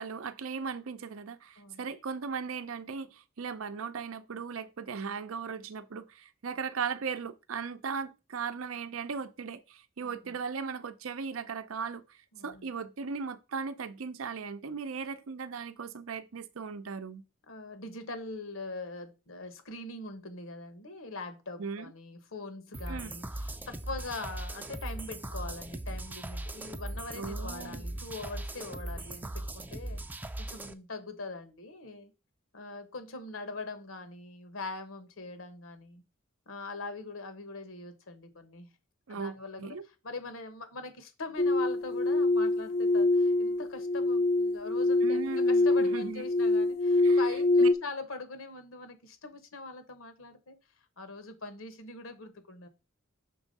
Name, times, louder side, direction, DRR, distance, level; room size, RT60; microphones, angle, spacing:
voice 1, 0.0-12.2 12.4-17.2 21.6-21.9 22.9-23.2 27.1-27.8 39.1-39.8 45.0-46.2 47.0-47.2 47.6-47.7, right 5 dB, 85° right, 0.6 m, -37 dB
voice 2, 1.6-1.9 10.0-10.3 12.3-12.7 17.5-32.1 32.5-36.0 36.5-38.7 39.1-50.6 51.0-52.7, left 3 dB, 80° left, 1.2 m, -42 dB
sound 1, 22.7-30.7, right 1 dB, 10° right, 0.4 m, -39 dB
sound 2, 41.4-47.7, left 2 dB, 50° left, 0.5 m, -25 dB
6.0 x 3.6 x 5.3 m
head